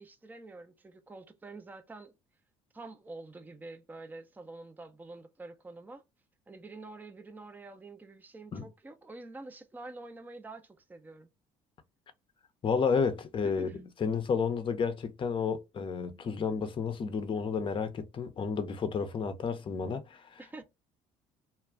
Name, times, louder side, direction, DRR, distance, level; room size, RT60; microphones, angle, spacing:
voice 1, 0.0-2.1 2.7-6.0 6.5-11.3 13.4-13.8 20.4-20.6, right 2 dB, 10° right, 0.5 m, -47 dB
voice 2, 12.6-20.3, left 5 dB, 35° left, 0.6 m, -31 dB
2.3 x 2.1 x 3.4 m
hypercardioid pair, 70°, 15 cm